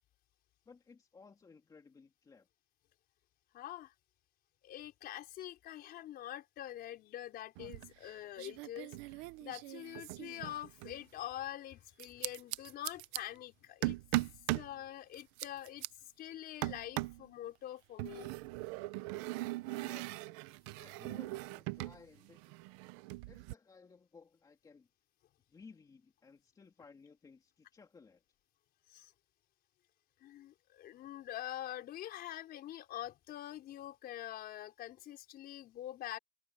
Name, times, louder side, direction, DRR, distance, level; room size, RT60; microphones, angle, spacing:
voice 1, 0.7-2.5 19.7-20.2 20.8-22.5 23.3-24.9 25.5-28.2, left 4 dB, 10° left, 2.9 m, -58 dB
voice 2, 3.5-3.9 4.6-14.0 14.5-15.8 16.2-18.3 28.9-29.1 30.2-36.2, left 12 dB, 25° left, 4.7 m, -45 dB
sound 1, 7.6-8.1 8.4-11.0 12.0-13.2 13.8-14.7 15.1-15.9 16.6-17.2 18.0-22.0 22.2-23.5, right 20 dB, 25° right, 0.3 m, -39 dB
supercardioid pair, 170°, 35 cm